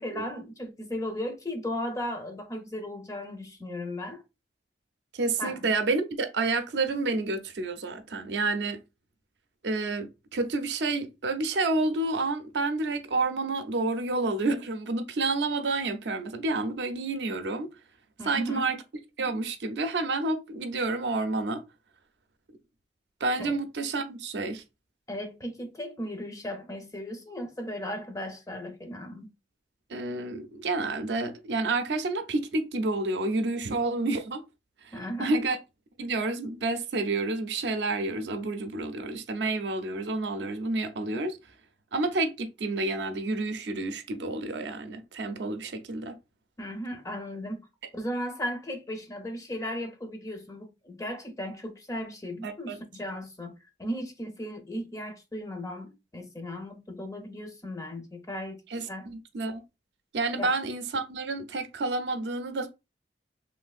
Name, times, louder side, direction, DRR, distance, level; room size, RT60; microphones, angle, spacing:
voice 1, 0.0-4.2 5.4-5.7 18.2-18.7 23.4-23.6 25.1-29.3 34.9-35.4 46.6-47.6 47.9-58.6 58.9-59.1 60.4-60.6, equal, 20° left, 0.5 m, -36 dB
voice 2, 5.1-8.8 9.6-17.7 18.2-18.8 19.2-21.6 23.2-24.6 29.9-34.4 34.8-35.6 36.0-41.4 41.9-46.1 52.4-52.8 58.7-59.6 60.1-62.7, right 3 dB, 70° right, 0.5 m, -29 dB
3.2 x 2.5 x 2.3 m
head